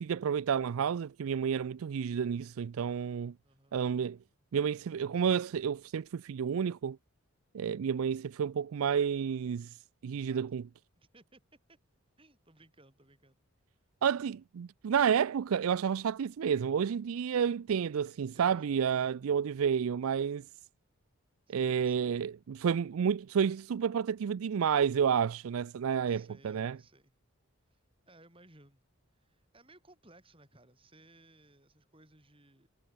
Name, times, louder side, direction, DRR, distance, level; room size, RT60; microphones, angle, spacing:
voice 1, 0.0-3.3 3.7-4.2 4.5-7.0 7.5-9.8 10.0-10.6 14.0-20.4 21.5-26.8, right 7 dB, 75° right, 0.4 m, -30 dB
voice 2, 3.4-3.8 10.3-10.4 10.9-11.4 11.7-11.8 12.2-13.4 18.2-19.3 21.5-22.2 26.1-27.1 27.7-27.8 28.1-28.8 29.1-32.7, right 2 dB, 25° right, 5.0 m, -61 dB
head